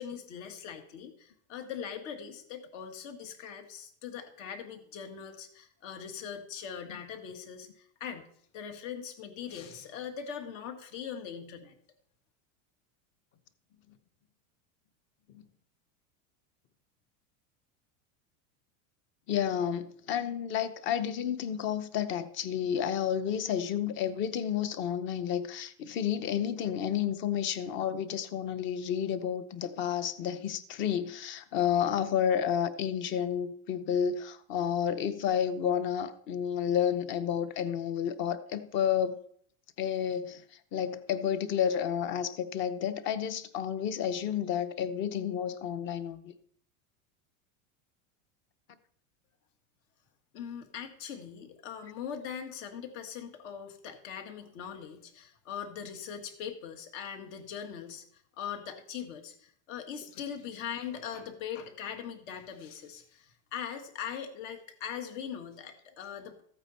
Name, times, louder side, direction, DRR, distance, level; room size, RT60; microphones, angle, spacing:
voice 1, 0.0-8.3 8.5-11.8 50.3-66.4, left 8 dB, 60° left, 2.0 m, -41 dB
voice 2, 19.3-39.2 39.8-40.4 40.7-46.3, left 9 dB, 30° left, 0.7 m, -31 dB
14.5 x 8.9 x 4.2 m
supercardioid pair, 160°, 40 cm